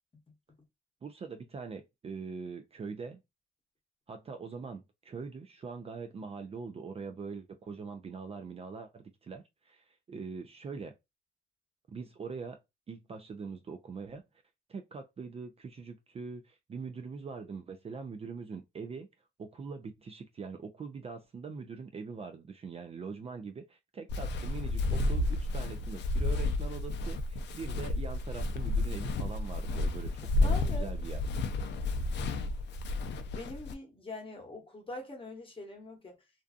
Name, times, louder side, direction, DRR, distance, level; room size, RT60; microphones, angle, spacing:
voice 1, 1.0-3.2 4.1-10.9 11.9-12.6 12.9-14.2 14.7-19.1 19.4-31.2, right 5 dB, 30° right, 0.4 m, -43 dB
Walk footsteps, 24.1-33.7, left 2 dB, 60° left, 0.4 m, -31 dB
voice 2, 30.4-30.9 33.3-36.2, left 2 dB, 25° left, 1.1 m, -43 dB
2.6 x 2.2 x 2.4 m
cardioid pair, 90°, 20 cm